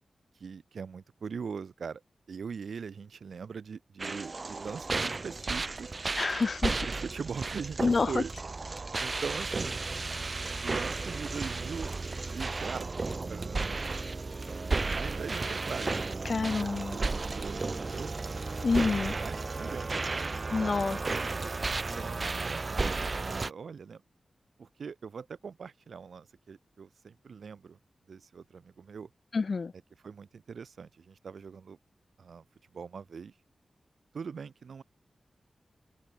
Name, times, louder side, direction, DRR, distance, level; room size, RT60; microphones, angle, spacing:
voice 1, 0.4-2.0 2.3-5.9 6.9-8.3 9.0-9.8 10.6-12.9 13.3-13.8 14.8-16.0 16.6-18.1 19.2-20.8 21.7-24.0 24.6-27.8 28.1-29.1 30.0-31.8 32.2-32.4 32.7-33.3 34.1-34.8, right 6 dB, 80° right, 2.2 m, -41 dB
sound 1, 4.0-23.5, right 3 dB, 40° right, 0.8 m, -33 dB
voice 2, 6.2-6.7 7.8-8.1 16.3-17.0 18.6-19.1 20.5-21.0 29.3-29.7, left 4 dB, 50° left, 0.5 m, -28 dB
open air
wide cardioid pair, 115°, 0 cm